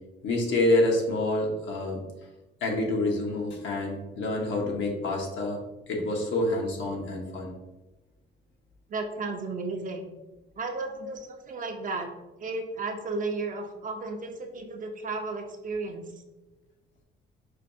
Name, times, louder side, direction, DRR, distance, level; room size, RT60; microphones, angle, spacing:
voice 1, 0.2-2.0 2.6-5.6 5.9-7.5, left 2 dB, 75° left, 0 dB, 0.9 m, -27 dB
voice 2, 8.9-10.1 10.6-12.1 12.4-16.0, right 3 dB, 40° right, 3 dB, 0.6 m, -33 dB
4.4 x 2.3 x 2.6 m, 1.1 s
cardioid pair, 90°, 20 cm